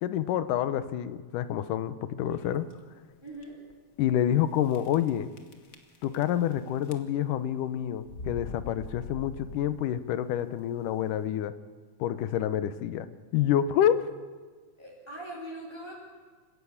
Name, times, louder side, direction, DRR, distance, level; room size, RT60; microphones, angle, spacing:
voice 1, 0.0-2.7 4.0-5.3 6.0-11.5 12.0-13.1 13.3-14.1, left 10 dB, 90° left, 13 dB, 2.5 m, -28 dB
sound 1, 2.3-2.7 3.3-3.4 3.7-3.8 4.7-5.1 5.4-6.5 6.8-7.4 8.0-10.0, left 3 dB, 45° left, 1.1 m, -42 dB
voice 2, 3.2-3.6 14.8-15.9, right 1 dB, 5° right, -4 dB, 4.3 m, -41 dB
27.0 x 15.5 x 8.7 m, 1.5 s
omnidirectional pair, 3.6 m